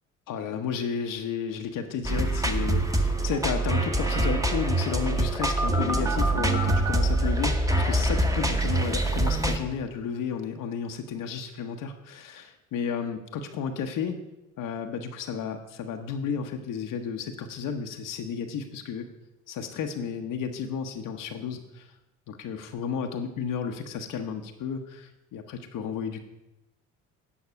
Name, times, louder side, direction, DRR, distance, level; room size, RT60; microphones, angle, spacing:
voice 1, 0.3-14.2 14.6-19.1 19.5-21.9 22.3-26.2, left 7 dB, 55° left, 4 dB, 1.0 m, -32 dB
sound 1, 2.0-9.6, right 1 dB, 10° right, 1.2 m, -25 dB
9.7 x 5.8 x 5.7 m, 0.93 s
hypercardioid pair, 55°, 37 cm